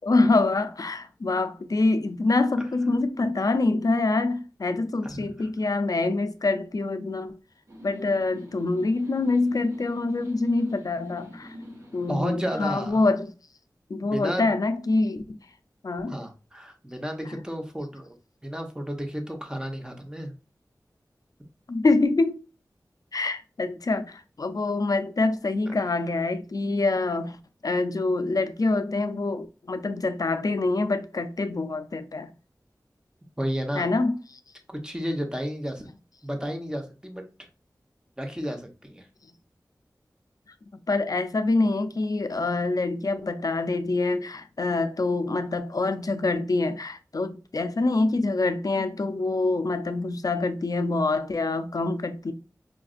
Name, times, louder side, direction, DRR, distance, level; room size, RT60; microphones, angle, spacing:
voice 1, 0.0-7.4 7.8-11.6 11.9-13.3 13.9-15.4 15.8-16.2 21.7-22.4 23.1-32.3 33.8-34.4 40.7-52.3, left 3 dB, 60° left, 0.4 m, -25 dB
voice 2, 5.0-5.5 12.1-13.0 14.0-14.5 16.1-18.2 18.4-20.3 33.4-33.9 34.7-35.9 36.2-37.2 38.2-39.1, equal, 10° right, 0.9 m, -32 dB
sound 1, 7.7-13.1, equal, 50° right, 1.4 m, -45 dB
5.0 x 2.5 x 2.4 m
wide cardioid pair, 45°, 7 cm